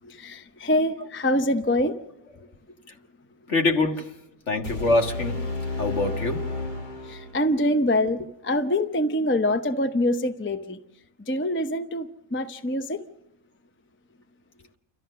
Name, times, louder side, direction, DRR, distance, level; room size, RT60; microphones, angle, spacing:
voice 1, 0.0-2.0 7.1-8.2 8.4-10.8 11.3-13.0, left 1 dB, 15° left, 0.5 m, -25 dB
voice 2, 3.5-4.1 4.5-5.4 5.8-6.5, left 2 dB, 55° left, 2.0 m, -24 dB
sound 1, 4.6-7.6, left 3 dB, 35° left, 1.8 m, -32 dB
29.5 x 13.5 x 6.7 m
omnidirectional pair, 1.5 m